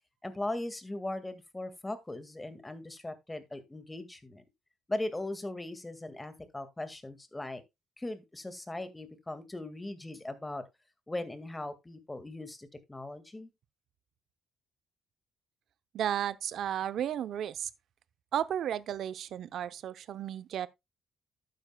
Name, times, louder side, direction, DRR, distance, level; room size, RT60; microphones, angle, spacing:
voice 1, 0.2-4.4 4.9-7.6 8.0-10.6 11.1-13.5, left 2 dB, 15° left, 1.9 m, -39 dB
voice 2, 15.9-17.7 18.3-20.7, right 10 dB, 70° right, 0.7 m, -33 dB
12.0 x 9.4 x 2.3 m
cardioid pair, 90°, 0 cm